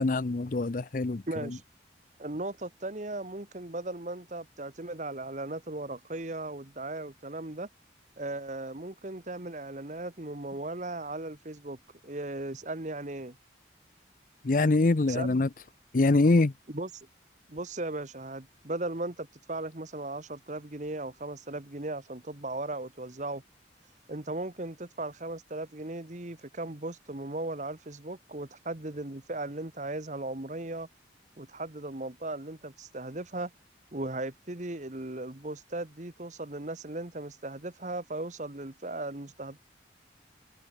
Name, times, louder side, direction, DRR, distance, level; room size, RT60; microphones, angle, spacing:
voice 1, 0.0-1.5 14.4-15.5 15.9-16.5, left 2 dB, 45° left, 0.6 m, -24 dB
voice 2, 1.3-1.6 2.2-7.7 8.2-11.8 12.0-13.4 15.1-15.4 16.7-16.9 17.5-23.4 24.1-30.9 31.4-33.5 33.9-39.6, right 2 dB, 40° right, 1.5 m, -37 dB
head